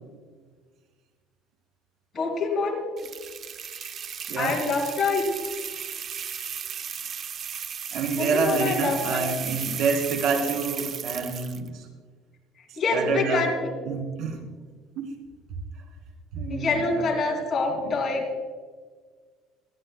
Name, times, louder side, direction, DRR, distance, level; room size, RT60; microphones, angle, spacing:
voice 1, 2.1-2.8 4.4-5.2 8.2-9.3 12.8-13.8 16.5-18.3, left 4 dB, 30° left, 0 dB, 3.0 m, -26 dB
sound 1, 3.0-11.7, right 8 dB, 35° right, 0.5 m, -35 dB
voice 2, 7.9-11.9 12.7-13.5 13.9-14.4 15.0-15.1 16.3-17.1 17.8-17.9, right 4 dB, 60° right, 1 dB, 3.2 m, -28 dB
21.5 x 13.5 x 2.3 m, 1.5 s
cardioid pair, 155°, 0 cm